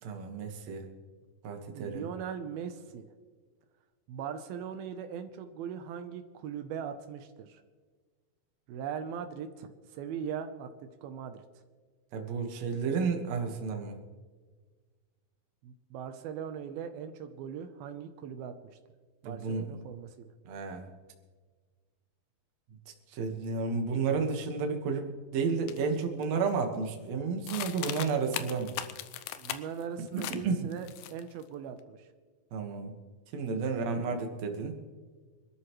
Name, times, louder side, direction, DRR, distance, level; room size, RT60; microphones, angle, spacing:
voice 1, 0.0-0.9 1.4-2.1 12.1-14.0 19.2-19.6 20.4-20.9 23.1-28.8 30.1-30.7 32.5-32.9 33.3-34.8, right 5 dB, 55° right, 4 dB, 2.4 m, -32 dB
voice 2, 1.7-3.1 4.1-7.6 8.7-11.4 15.6-18.5 19.2-20.3 29.4-32.1 33.8-34.2, right 7 dB, 80° right, 7 dB, 2.7 m, -40 dB
sound 1, 25.7-25.8 26.2-26.6 27.5-29.8 30.2-30.4 30.7-31.4, left 12 dB, 75° left, 2.3 m, -38 dB
25.5 x 12.5 x 3.1 m, 1.5 s
omnidirectional pair, 4.3 m